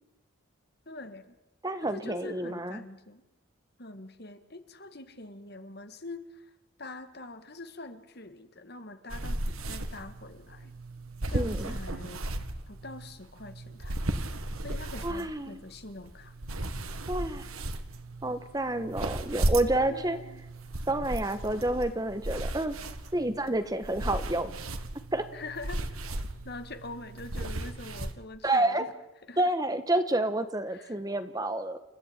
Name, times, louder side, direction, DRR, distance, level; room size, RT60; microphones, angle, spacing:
voice 1, 0.9-1.3 1.8-3.2 3.8-6.4 6.8-10.7 11.3-12.3 12.7-14.3 14.6-16.3 19.9-20.4 25.3-25.8 26.4-28.9 29.3-29.4 30.7-31.0, left 2 dB, 50° left, 9 dB, 1.9 m, -44 dB
voice 2, 1.6-2.8 11.3-11.8 15.0-15.6 17.1-17.5 18.2-20.2 20.9-22.8 23.1-24.5 25.1-25.2 28.4-28.9 29.4-31.8, right 1 dB, 15° right, 10 dB, 1.3 m, -29 dB
sound 1, 9.1-28.1, right 1 dB, 85° right, 1.9 m, -36 dB
30.0 x 14.5 x 8.9 m, 0.99 s
head